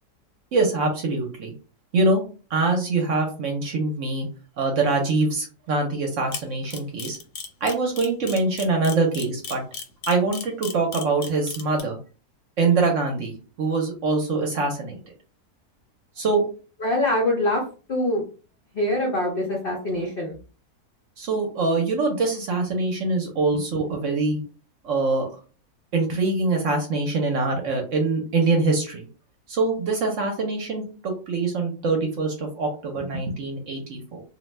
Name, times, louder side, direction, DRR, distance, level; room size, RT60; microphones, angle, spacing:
voice 1, 0.5-1.5 1.9-2.2 2.5-4.3 4.6-7.2 7.6-9.6 10.1-12.0 12.6-15.0 16.2-16.4 21.2-24.4 24.8-25.3 25.9-29.1 29.5-34.2, right 3 dB, 60° right, 2 dB, 0.9 m, -24 dB
Camera, 6.3-11.8, left 6 dB, 90° left, 1.3 m, -34 dB
voice 2, 16.8-17.6 17.9-18.2 18.7-20.4, left 1 dB, 65° left, -1 dB, 0.5 m, -24 dB
2.6 x 2.2 x 3.1 m, 0.37 s
omnidirectional pair, 1.7 m